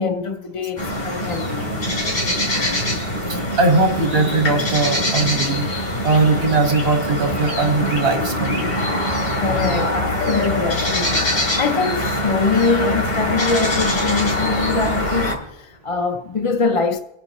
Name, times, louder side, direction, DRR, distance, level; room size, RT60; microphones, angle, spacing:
voice 1, 0.0-1.7 9.3-17.0, left 4 dB, 35° left, 0.6 m, -23 dB
sound 1, 0.8-15.3, left 1 dB, 65° left, 2.9 m, -23 dB
voice 2, 3.2-8.6, right 3 dB, 85° right, 2.0 m, -20 dB
23.5 x 8.4 x 3.0 m
omnidirectional pair, 1.0 m